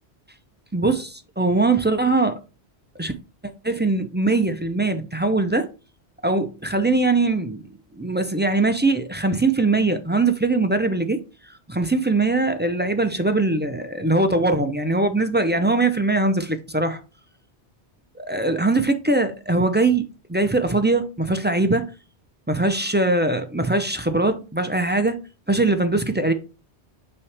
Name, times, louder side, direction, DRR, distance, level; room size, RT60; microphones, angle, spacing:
voice 1, 0.7-2.4 3.0-3.1 3.6-5.7 6.2-7.6 8.0-11.2 11.7-17.0 18.2-21.8 22.5-25.2 25.5-26.3, right 2 dB, 15° right, 0.3 m, -21 dB
5.7 x 5.3 x 3.3 m
omnidirectional pair, 1.1 m